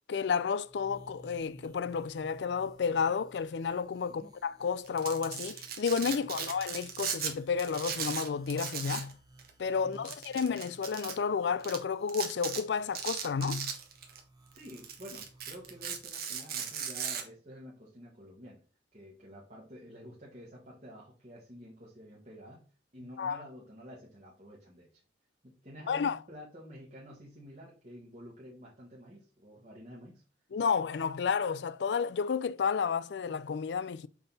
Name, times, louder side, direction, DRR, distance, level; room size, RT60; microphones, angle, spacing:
voice 1, 0.1-9.1 9.6-13.7 23.2-23.4 25.9-26.2 30.5-34.1, left 6 dB, 70° left, 0.4 m, -31 dB
sound 1, 0.6-16.0, right 2 dB, 20° right, 1.1 m, -58 dB
Domestic sounds home sounds, 4.8-7.3 7.6-9.1 9.4-9.5 10.1-11.1 11.6-11.8 12.1-12.6 13.0-14.2 14.6-17.2, right 7 dB, 55° right, 1.3 m, -37 dB
voice 2, 14.5-18.6 18.9-22.6 22.9-25.0 25.4-30.2, equal, 40° right, 1.7 m, -50 dB
6.8 x 3.8 x 4.1 m
head